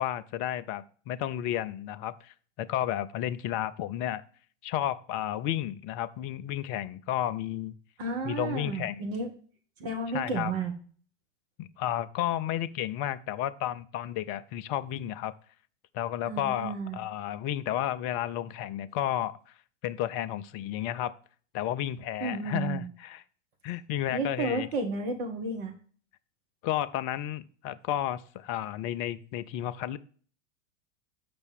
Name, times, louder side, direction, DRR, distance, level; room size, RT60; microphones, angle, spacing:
voice 1, 0.0-4.2 4.6-7.7 8.2-9.0 10.1-10.5 11.6-15.3 15.9-19.4 19.8-21.1 21.5-23.2 23.6-24.7 26.6-30.0, left 12 dB, 25° left, 14 dB, 0.4 m, -32 dB
voice 2, 8.0-9.3 9.8-10.7 16.3-17.0 22.2-22.8 24.1-25.7, right 3 dB, 55° right, 4 dB, 1.6 m, -32 dB
8.0 x 5.9 x 3.4 m, 0.43 s
figure-of-eight pair, 90°, 38 cm